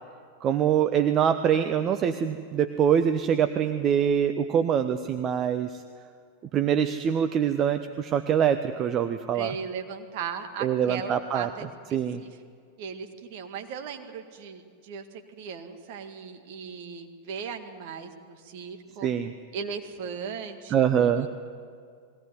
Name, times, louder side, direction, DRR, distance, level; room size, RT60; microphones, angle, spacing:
voice 1, 0.4-5.8 6.5-9.5 10.6-11.5 11.9-12.2 19.0-19.3 20.7-21.3, right 8 dB, 30° right, 9 dB, 0.8 m, -24 dB
voice 2, 9.3-12.3 12.8-15.1 15.3-19.1 19.5-21.3, right 6 dB, 50° right, 5 dB, 1.9 m, -37 dB
20.5 x 17.5 x 9.6 m, 2.2 s
figure-of-eight pair, 90°, 0 cm